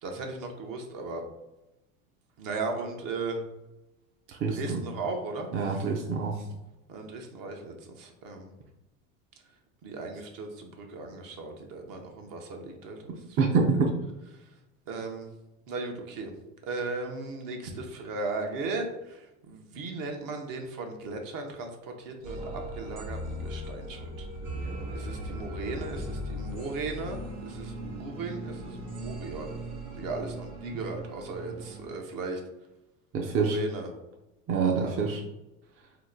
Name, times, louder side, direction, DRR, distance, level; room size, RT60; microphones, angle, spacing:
voice 1, 0.0-1.2 2.4-3.4 4.5-5.5 6.9-8.5 9.8-13.4 14.3-14.4 14.9-15.3 15.7-16.3 16.6-24.3 24.9-29.5 30.0-32.4 33.4-33.9 34.7-35.0, right 3 dB, 55° right, 3 dB, 0.8 m, -37 dB
voice 2, 4.4-4.8 5.5-6.4 13.4-13.9 33.1-33.6 34.5-35.2, right 4 dB, 30° right, 0 dB, 0.5 m, -26 dB
sound 1, 22.2-31.9, equal, 85° right, 1.1 m, -38 dB
2.9 x 2.1 x 3.7 m, 0.98 s
supercardioid pair, 105°, 41 cm